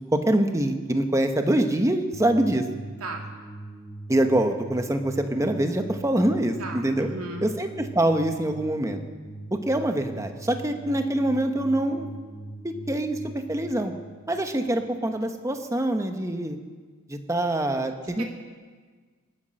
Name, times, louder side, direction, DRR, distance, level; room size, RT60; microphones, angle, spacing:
voice 1, 0.1-2.7 4.1-7.1 7.4-9.0 9.5-12.1 12.6-13.9 14.3-16.6 17.1-18.2, right 1 dB, 15° right, 6 dB, 1.0 m, -24 dB
sound 1, 2.1-15.2, right 2 dB, 45° left, 4.6 m, -41 dB
voice 2, 6.6-7.5 18.2-18.3, right 2 dB, 80° right, 1 dB, 2.2 m, -36 dB
20.5 x 9.9 x 6.4 m, 1.5 s
head